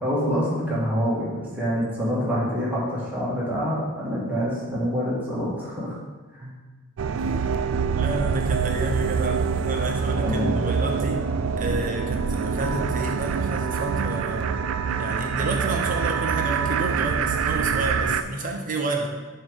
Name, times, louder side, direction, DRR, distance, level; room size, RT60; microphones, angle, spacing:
voice 1, 0.0-6.0 6.4-6.5 10.2-10.7, equal, 10° right, -8 dB, 1.9 m, -26 dB
sound 1, 7.0-18.2, right 6 dB, 65° right, 0.3 m, -25 dB
voice 2, 7.9-11.2 11.6-14.6 15.0-19.1, right 2 dB, 40° right, 2 dB, 0.8 m, -30 dB
7.1 x 3.3 x 5.5 m, 1.3 s
head